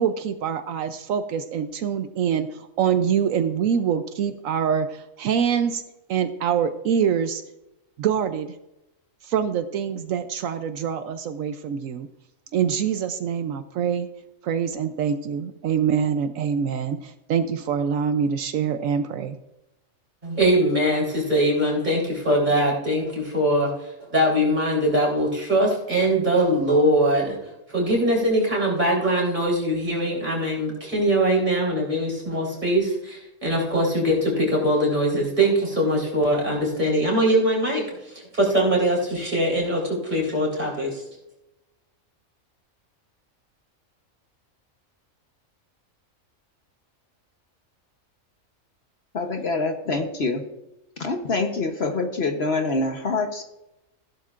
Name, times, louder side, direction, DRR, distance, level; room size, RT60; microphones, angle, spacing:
voice 1, 0.0-5.8 6.1-7.4 8.0-8.5 9.2-12.1 12.5-14.1 14.4-19.4, right 7 dB, 80° right, 9 dB, 1.1 m, -25 dB
voice 2, 20.2-23.7 24.0-27.4 27.7-41.0, right 1 dB, 35° right, -3 dB, 4.1 m, -22 dB
voice 3, 49.1-50.4 51.0-53.4, left 3 dB, 50° left, 5 dB, 1.2 m, -25 dB
15.5 x 11.5 x 2.5 m, 0.90 s
omnidirectional pair, 1.4 m